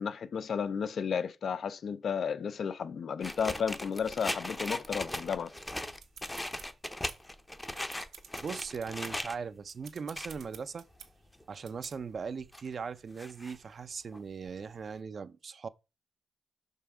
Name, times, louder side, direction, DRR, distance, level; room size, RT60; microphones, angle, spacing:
voice 1, 0.0-5.5, left 6 dB, 55° left, 0.5 m, -33 dB
sound 1, 3.2-9.4 9.8-10.4 10.9-11.0 11.4-11.5 12.2-12.7 13.2-13.6 14.1-14.2 14.5-14.6 14.8-14.9, left 1 dB, 10° left, 0.7 m, -38 dB
sound 2, 6.0-7.4 7.7-9.1 9.6-11.1 11.7-12.0, right 8 dB, 80° right, 1.0 m, -51 dB
voice 2, 8.4-10.9 11.5-15.7, right 5 dB, 45° right, 0.5 m, -39 dB
5.7 x 5.5 x 4.8 m
wide cardioid pair, 135°, 0 cm